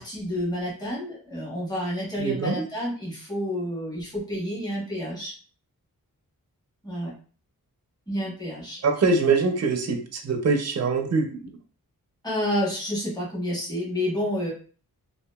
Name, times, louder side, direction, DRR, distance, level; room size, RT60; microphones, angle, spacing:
voice 1, 0.0-5.3 6.8-7.1 8.1-8.8 12.2-14.5, equal, 10° left, -4 dB, 1.0 m, -29 dB
voice 2, 2.2-2.6 8.8-11.5, right 4 dB, 45° right, 4 dB, 0.5 m, -23 dB
2.7 x 2.4 x 2.2 m, 0.40 s
wide cardioid pair, 85°, 36 cm